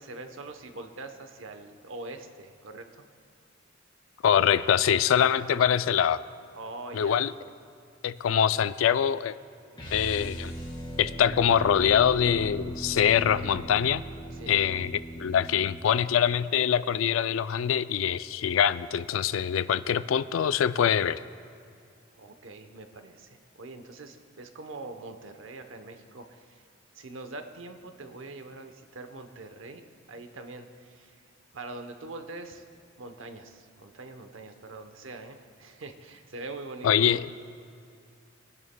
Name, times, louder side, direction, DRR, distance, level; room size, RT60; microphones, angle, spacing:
voice 1, 0.0-3.0 6.5-7.2 14.3-14.6 22.2-26.6 26.9-31.2 31.5-32.6 33.0-37.1, right 2 dB, 80° right, 7 dB, 0.8 m, -43 dB
voice 2, 4.2-6.2 6.9-7.3 8.0-9.4 9.9-10.5 11.0-14.0 14.5-21.2 36.8-37.3, left 8 dB, 90° left, 15 dB, 0.3 m, -24 dB
sound 1, 9.7-15.9, right 1 dB, 25° left, 2.7 m, -38 dB
25.5 x 11.0 x 2.2 m, 2.4 s
head